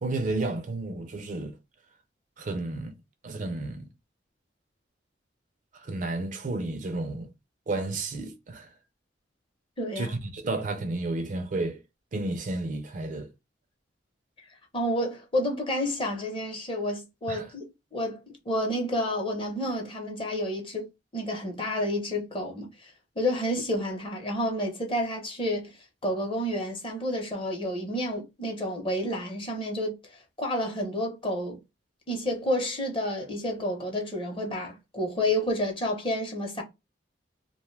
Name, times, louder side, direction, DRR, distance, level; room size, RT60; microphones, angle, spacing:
voice 1, 0.0-1.6 2.4-2.9 3.2-3.9 5.8-7.3 7.7-8.7 10.0-11.8 12.1-13.3 17.3-17.5, right 2 dB, 45° right, 0.4 m, -32 dB
voice 2, 9.8-10.1 14.7-17.7 17.9-20.9 21.1-22.9 23.2-25.7 26.0-29.9 30.4-31.6 32.1-36.6, left 1 dB, 30° left, 0.8 m, -30 dB
2.5 x 2.2 x 3.1 m
head